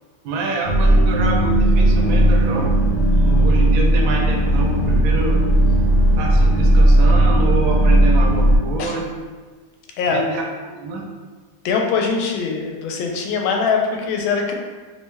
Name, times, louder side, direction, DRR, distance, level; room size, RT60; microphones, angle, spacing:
voice 1, 0.2-2.7 3.2-5.4 6.2-9.1 10.1-11.1, right 2 dB, 85° right, 1 dB, 1.4 m, -26 dB
sound 1, 0.6-8.6, right 1 dB, 65° left, 1.4 m, -15 dB
voice 2, 11.6-14.5, left 5 dB, 85° left, 2 dB, 1.4 m, -22 dB
3.3 x 3.1 x 3.3 m, 1.3 s
omnidirectional pair, 2.1 m